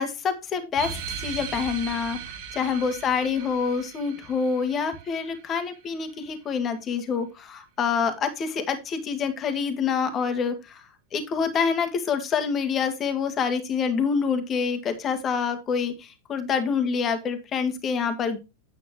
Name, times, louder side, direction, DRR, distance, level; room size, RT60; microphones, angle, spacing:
voice 1, 0.0-2.2 2.5-10.8 11.1-18.4, left 6 dB, 25° left, 7 dB, 2.0 m, -26 dB
sound 1, 0.8-5.8, right 7 dB, 50° right, 1.6 m, -38 dB
9.8 x 8.2 x 3.1 m, 0.25 s
figure-of-eight pair, 90°, 0 cm